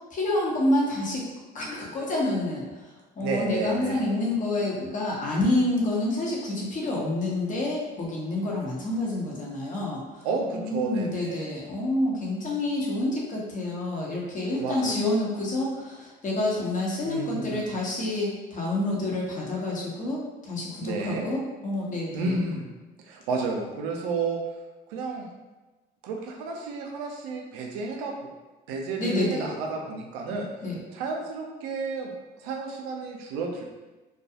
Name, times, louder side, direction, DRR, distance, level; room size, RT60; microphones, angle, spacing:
voice 1, 0.1-1.2 1.5-10.3 10.5-22.4 29.0-29.5 30.6-30.8, left 1 dB, 40° left, -3 dB, 0.9 m, -28 dB
voice 2, 3.2-4.0 10.2-11.4 14.6-15.0 17.1-17.7 20.8-21.3 22.1-22.7 23.0-24.4 24.9-25.3 26.0-28.1 28.7-30.5 30.9-32.1 32.4-33.6, right 3 dB, 90° right, 1 dB, 0.5 m, -31 dB
2.3 x 2.2 x 2.7 m, 1.2 s
supercardioid pair, 85°, 20 cm